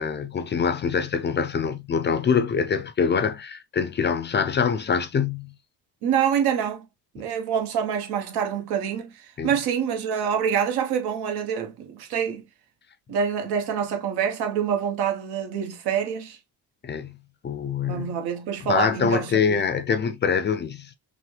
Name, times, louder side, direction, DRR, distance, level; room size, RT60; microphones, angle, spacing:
voice 1, 0.0-5.5 7.2-7.3 9.4-9.5 16.8-17.2 17.4-18.2 18.6-20.9, left 6 dB, 30° left, 0.4 m, -24 dB
voice 2, 6.0-6.8 7.1-12.4 13.1-16.4 17.9-19.7, right 8 dB, 85° right, 1.1 m, -26 dB
5.9 x 2.1 x 3.2 m
cardioid pair, 130°, 38 cm